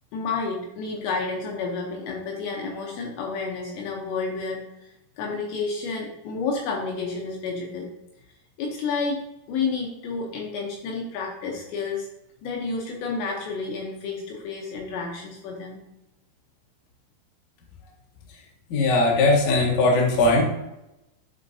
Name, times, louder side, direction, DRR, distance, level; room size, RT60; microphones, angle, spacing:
voice 1, 0.1-4.9 5.2-7.9 8.6-12.1 12.4-15.8, left 4 dB, 75° left, 0 dB, 2.8 m, -30 dB
voice 2, 18.7-20.4, left 2 dB, 60° left, -2 dB, 2.0 m, -19 dB
11.5 x 4.4 x 2.7 m, 0.90 s
omnidirectional pair, 5.6 m